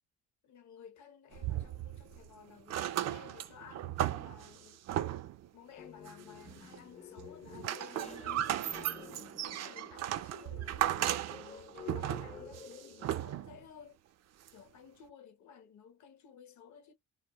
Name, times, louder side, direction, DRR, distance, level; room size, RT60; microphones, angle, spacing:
voice 1, 0.4-4.8 5.5-14.0 14.5-16.9, left 7 dB, 70° left, 0.9 m, -56 dB
sound 1, 1.3-2.3 2.6-5.5 6.1-6.8 7.2-13.6 14.5-14.6, right 12 dB, 60° right, 0.4 m, -36 dB
sound 2, 5.8-13.1, left 7 dB, 25° left, 0.4 m, -50 dB
2.2 x 2.0 x 2.9 m
cardioid pair, 90°, 30 cm